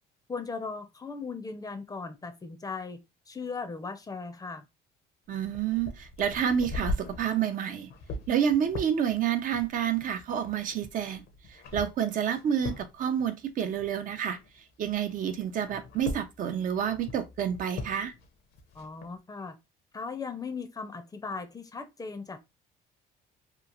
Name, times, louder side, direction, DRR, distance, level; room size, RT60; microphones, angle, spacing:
voice 1, 0.3-3.0 3.3-4.7 18.7-19.5 19.9-22.4, left 4 dB, 20° left, 0.5 m, -38 dB
voice 2, 5.3-7.9 8.3-18.1, right 8 dB, 50° right, 0.5 m, -29 dB
sound 1, 5.4-14.6 14.9-19.1, left 2 dB, 65° left, 0.7 m, -40 dB
3.0 x 2.4 x 2.4 m
cardioid pair, 110°, 17 cm